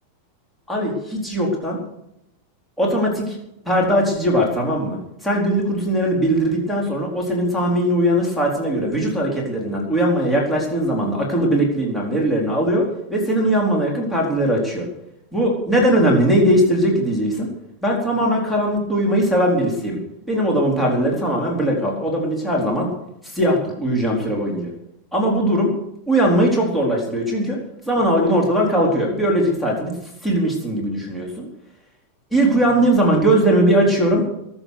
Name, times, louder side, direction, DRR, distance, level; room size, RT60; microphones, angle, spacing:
voice 1, 0.7-1.8 2.8-3.4 3.7-14.9 15.3-17.5 17.8-20.0 20.3-22.9 23.2-24.7 25.1-25.7 26.1-27.6 27.9-29.9 30.2-31.5 32.3-34.3, right 1 dB, 5° left, -3 dB, 4.2 m, -19 dB
22.0 x 7.5 x 6.6 m, 0.81 s
figure-of-eight pair, 90°, 0 cm